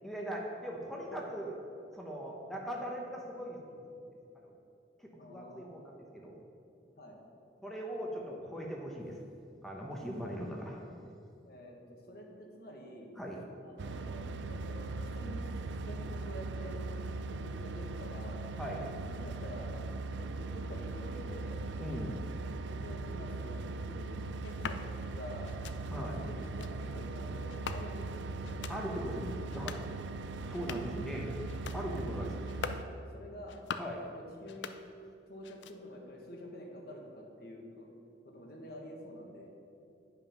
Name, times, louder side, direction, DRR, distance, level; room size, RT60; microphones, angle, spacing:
voice 1, 0.0-1.5 1.9-3.8 4.3-4.5 5.0-6.3 7.6-9.2 9.6-10.8 13.2-13.4 18.6-18.9 21.8-22.2 25.9-26.1 28.7-29.8 30.4-31.3 31.7-32.4 33.8-34.0, equal, ahead, -2 dB, 0.9 m, -40 dB
voice 2, 5.1-6.0 7.0-7.2 10.2-10.4 11.5-13.1 13.6-15.5 15.8-16.9 17.3-18.4 19.0-19.7 20.1-21.6 22.7-25.5 25.9-28.7 31.9-32.0 33.1-33.6 34.1-34.7 35.3-37.9 38.2-39.5, equal, 55° left, 0 dB, 1.4 m, -48 dB
sound 1, 13.8-32.8, right 3 dB, 70° right, 0.4 m, -39 dB
sound 2, 24.4-24.8 25.4-25.8 26.4-26.7 27.5-28.1 28.4-28.8 29.4-29.9 30.4-31.0 31.4-31.8 32.4-32.9 33.4-34.0 34.4-35.1 35.4-36.0, left 6 dB, 70° left, 0.4 m, -43 dB
9.4 x 5.7 x 5.7 m, 2.6 s
head